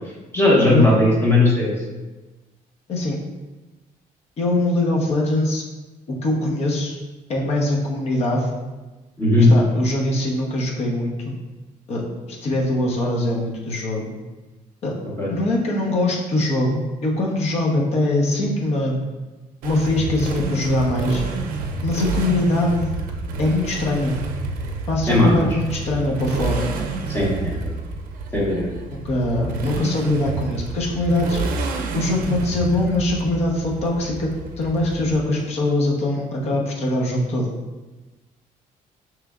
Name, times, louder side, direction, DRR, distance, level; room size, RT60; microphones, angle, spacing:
voice 1, 0.3-1.7 9.2-9.5 15.2-15.3 25.1-25.4 27.1-27.5 28.3-28.7, left 2 dB, 15° left, -5 dB, 1.2 m, -17 dB
voice 2, 4.4-5.6 6.1-7.0 7.3-8.5 9.4-11.4 11.9-12.0 12.3-14.1 14.8-14.9 15.3-19.0 19.6-21.2 21.8-22.9 23.4-24.1 24.9-26.7 28.9-31.4 31.9-34.3 34.6-37.5, left 1 dB, 50° left, -2 dB, 0.9 m, -22 dB
Motorcycle, 19.6-35.4, right 3 dB, 90° right, 0.5 m, -29 dB
5.8 x 3.2 x 2.4 m, 1.2 s
cardioid pair, 150°, 14 cm